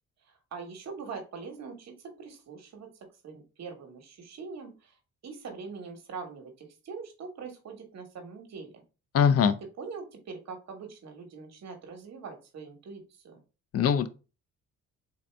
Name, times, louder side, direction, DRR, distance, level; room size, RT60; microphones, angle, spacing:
voice 1, 0.2-2.9 3.2-5.0 5.2-8.8 9.6-13.4, right 5 dB, 60° right, 1.1 m, -43 dB
voice 2, 9.1-9.5 13.7-14.1, left 7 dB, 50° left, 0.4 m, -21 dB
3.8 x 2.6 x 3.3 m
cardioid pair, 90°, 30 cm